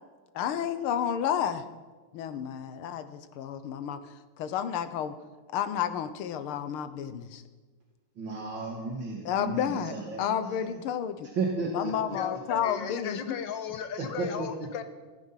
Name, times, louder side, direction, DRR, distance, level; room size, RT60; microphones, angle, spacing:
voice 1, 0.4-1.7 2.1-5.2 5.5-7.4 9.3-11.3 11.7-13.4, left 9 dB, 85° left, 11 dB, 1.8 m, -31 dB
voice 2, 8.2-10.8 11.4-12.4 14.0-14.5, right 3 dB, 65° right, 0 dB, 2.4 m, -34 dB
voice 3, 12.1-14.8, left 7 dB, 65° left, 9 dB, 1.8 m, -36 dB
15.5 x 14.5 x 5.7 m, 1.3 s
omnidirectional pair, 2.3 m